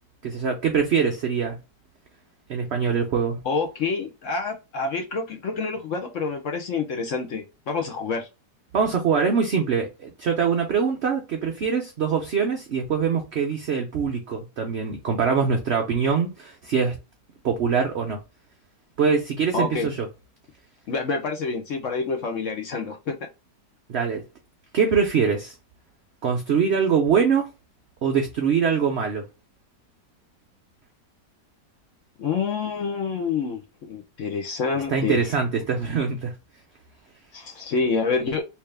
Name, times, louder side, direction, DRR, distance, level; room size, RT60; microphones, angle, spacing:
voice 1, 0.2-1.6 2.5-3.4 8.7-17.0 17.4-18.2 19.0-20.1 23.9-24.2 24.7-25.5 26.2-27.5 28.0-29.3 34.9-36.3, right 6 dB, 70° right, 0.6 m, -23 dB
voice 2, 3.4-8.3 19.5-19.9 20.9-23.1 32.2-33.6 33.9-35.2 37.3-38.4, left 4 dB, 55° left, 0.9 m, -27 dB
3.4 x 2.9 x 3.3 m
omnidirectional pair, 1.9 m